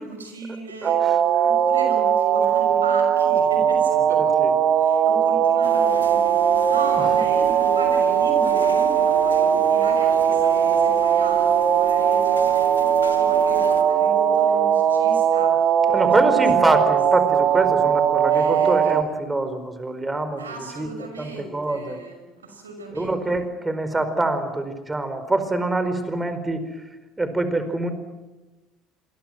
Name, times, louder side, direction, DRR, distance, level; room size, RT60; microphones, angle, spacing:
voice 1, 0.0-1.1 1.4-4.3 4.8-16.1 16.6-16.8 17.2-17.7 18.3-18.9 20.4-23.1, right 2 dB, 85° right, 5 dB, 5.8 m, -37 dB
voice 2, 0.8-1.4 4.1-4.5 15.9-20.5 20.8-20.9 21.2-22.0 22.9-26.9 27.2-27.9, right 2 dB, 15° right, 10 dB, 4.7 m, -25 dB
sound 1, 0.8-19.0, right 8 dB, 50° right, 1.8 m, -19 dB
sound 2, 5.6-13.9, left 8 dB, 85° left, 1.4 m, -37 dB
27.0 x 21.5 x 7.7 m, 1.1 s
figure-of-eight pair, 60°, 0 cm